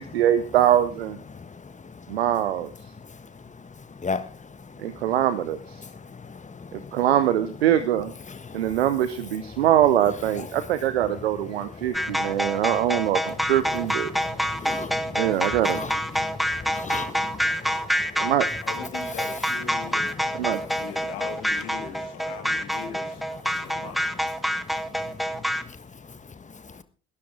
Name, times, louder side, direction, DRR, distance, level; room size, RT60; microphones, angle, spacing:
voice 1, 0.0-1.2 2.1-2.7 4.8-5.8 6.7-8.1 8.5-14.1 15.2-15.8 18.2-18.5 20.4-20.6, right 11 dB, 75° right, 0.8 m, -23 dB
voice 2, 6.2-6.9 8.3-8.8 11.8-12.6 14.1-15.2 15.6-18.3 25.0-25.1, left 4 dB, 25° left, 1.5 m, -36 dB
sound 1, 11.9-25.6, equal, ahead, 1.2 m, -27 dB
voice 3, 18.6-20.2 20.6-23.2 23.5-24.1, left 8 dB, 65° left, 3.0 m, -40 dB
19.5 x 12.0 x 3.7 m
figure-of-eight pair, 50°, 31 cm